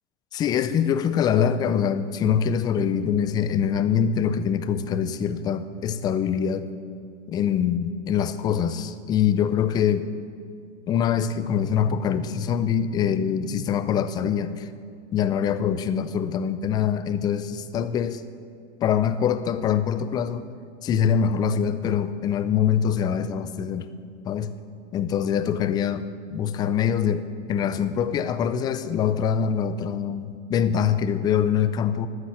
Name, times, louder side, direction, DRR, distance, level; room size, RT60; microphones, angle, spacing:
voice 1, 0.3-6.7 7.3-10.1 10.9-14.7 15.1-18.2 18.8-20.5 20.8-23.9 24.2-24.5 24.9-32.1, left 8 dB, 10° left, 12 dB, 0.3 m, -24 dB
12.5 x 9.6 x 7.4 m, 2.3 s
hypercardioid pair, 110°, 35 cm